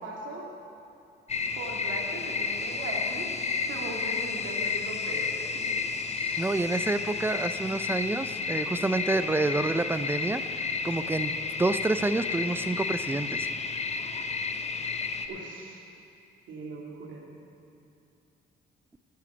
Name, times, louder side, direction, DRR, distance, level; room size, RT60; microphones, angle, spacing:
voice 1, 0.0-0.5 1.5-3.3 3.7-5.9 6.2-6.3 15.3-15.8 16.5-17.3, right 2 dB, 75° right, -1 dB, 2.2 m, -39 dB
sound 1, 1.3-15.3, left 4 dB, 35° left, 0.7 m, -31 dB
voice 2, 6.4-10.4 10.8-13.5, right 2 dB, 10° right, 11 dB, 0.5 m, -28 dB
10.0 x 8.4 x 7.0 m, 2.6 s
cardioid pair, 90°, 20 cm